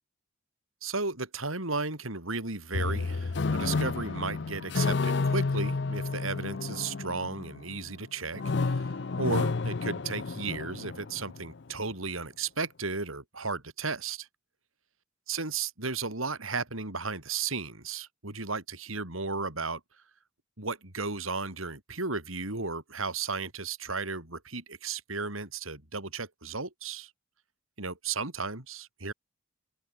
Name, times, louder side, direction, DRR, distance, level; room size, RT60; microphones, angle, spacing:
voice 1, 0.8-14.3 15.3-19.8 20.6-27.1 27.8-29.1, right 4 dB, 85° right, 5.4 m, -34 dB
sound 1, 2.7-7.9 8.3-11.5, left 3 dB, 55° left, 0.6 m, -30 dB
open air
head